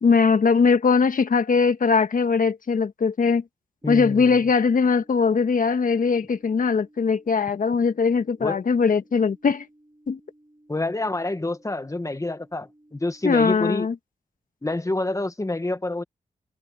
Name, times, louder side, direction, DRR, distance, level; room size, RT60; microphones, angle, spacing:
voice 1, 0.0-3.4 3.9-9.7 10.1-10.2 13.2-13.9, left 5 dB, 60° left, 1.7 m, -20 dB
voice 2, 3.8-4.4 8.4-8.6 10.7-13.9 14.6-16.0, left 2 dB, 20° left, 1.8 m, -27 dB
sound 1, 3.8-13.8, right 1 dB, 20° right, 5.4 m, -57 dB
cardioid pair, 55°, 16 cm